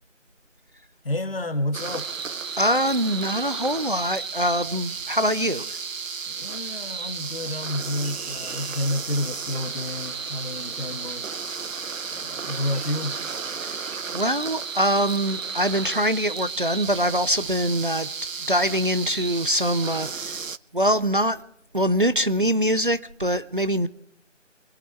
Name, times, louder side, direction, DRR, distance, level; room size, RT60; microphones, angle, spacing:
voice 1, 1.0-2.1 6.3-11.4 12.1-13.1, left 1 dB, 50° left, 1.4 m, -30 dB
sound 1, 1.7-20.6, right 5 dB, 90° right, 0.7 m, -33 dB
voice 2, 2.6-5.6 13.6-13.8 14.1-18.1 18.5-20.4 20.7-21.4 21.7-23.9, equal, 45° right, 0.5 m, -23 dB
Chirp tweet, 4.9-6.5 7.5-10.7 11.8-12.1 12.7-12.9 13.2-13.4 13.7-14.0, right 3 dB, 30° right, 2.3 m, -51 dB
24.0 x 9.1 x 4.5 m
figure-of-eight pair, 165°, 38 cm